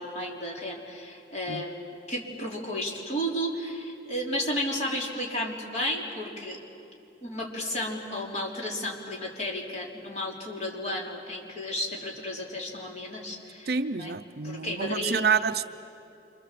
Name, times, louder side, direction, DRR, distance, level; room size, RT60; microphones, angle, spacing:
voice 1, 0.0-6.6 7.2-14.1 14.4-15.2, equal, 35° left, -2 dB, 3.8 m, -33 dB
voice 2, 13.7-15.7, right 5 dB, 55° right, 11 dB, 0.6 m, -28 dB
27.0 x 26.0 x 7.7 m, 2.6 s
head